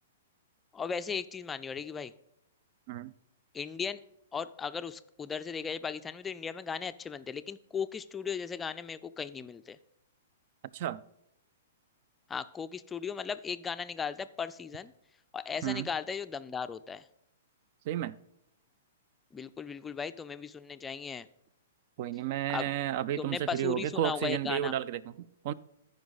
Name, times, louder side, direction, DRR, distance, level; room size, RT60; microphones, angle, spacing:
voice 1, 0.7-2.1 3.5-4.0 4.3-9.8 12.3-14.9 15.3-17.0 19.3-21.3 22.5-22.7 23.2-24.7, left 6 dB, 15° left, 0.4 m, -37 dB
voice 2, 17.9-18.2 22.0-25.5, right 12 dB, 50° right, 0.4 m, -32 dB
14.0 x 5.2 x 4.1 m
hypercardioid pair, 125°, 0 cm